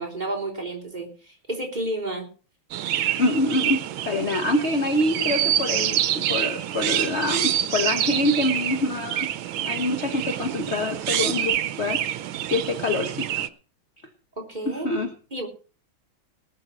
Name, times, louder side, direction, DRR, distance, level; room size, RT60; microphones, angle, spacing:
voice 1, 0.0-2.3 14.4-14.9 15.3-15.5, right 1 dB, 20° right, -1 dB, 3.5 m, -31 dB
Chirp tweet, 2.7-13.5, right 11 dB, 80° right, 1.6 m, -27 dB
voice 2, 3.2-9.3 9.7-13.3 14.6-15.1, left 1 dB, 35° left, 5 dB, 1.3 m, -25 dB
19.0 x 6.7 x 6.1 m, 0.39 s
omnidirectional pair, 2.2 m